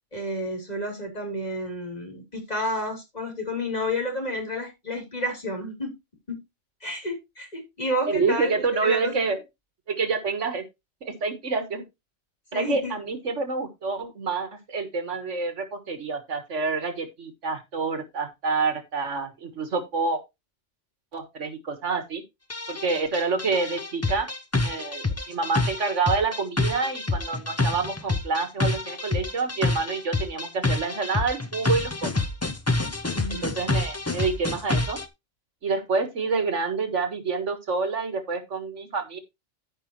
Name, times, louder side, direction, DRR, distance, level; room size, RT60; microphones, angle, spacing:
voice 1, 0.1-5.9 6.3-6.4 6.8-8.6 8.8-9.3 12.5-12.9 33.1-33.5, left 1 dB, 35° left, 1 dB, 3.7 m, -30 dB
voice 2, 8.1-9.4 9.9-10.6 11.0-11.8 12.5-20.2 21.1-22.2 22.7-24.3 24.6-32.1 33.3-35.0 35.6-39.2, right 4 dB, 80° right, 7 dB, 1.9 m, -27 dB
sound 1, 22.5-35.1, left 2 dB, 15° left, 0.7 m, -27 dB
14.5 x 5.2 x 3.1 m, 0.22 s
omnidirectional pair, 1.2 m